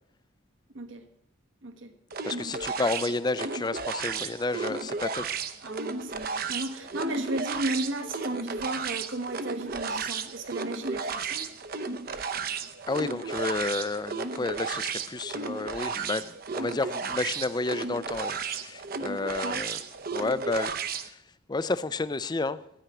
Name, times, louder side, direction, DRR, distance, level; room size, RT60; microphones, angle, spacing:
voice 1, 0.7-1.1 1.6-1.9 5.6-11.5 19.4-19.6, right 1 dB, 80° right, 7 dB, 1.4 m, -34 dB
sound 1, 2.1-21.1, right 5 dB, 50° right, 0.8 m, -34 dB
voice 2, 2.2-5.3 12.9-19.8 20.1-21.2 21.5-22.6, left 3 dB, 20° left, 16 dB, 0.4 m, -31 dB
13.0 x 9.1 x 6.1 m, 0.81 s
head